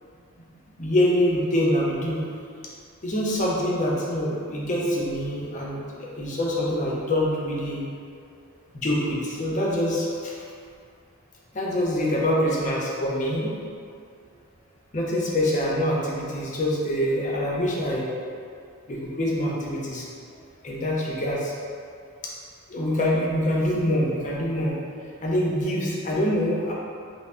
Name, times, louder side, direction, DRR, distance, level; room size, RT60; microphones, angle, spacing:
voice 1, 0.8-2.2 3.0-7.8 8.7-10.3 11.5-13.5 14.9-18.1 18.9-20.0 20.6-21.5 22.7-24.8 25.2-26.7, equal, 35° left, -4 dB, 0.6 m, -25 dB
5.4 x 2.0 x 2.5 m, 2.3 s
head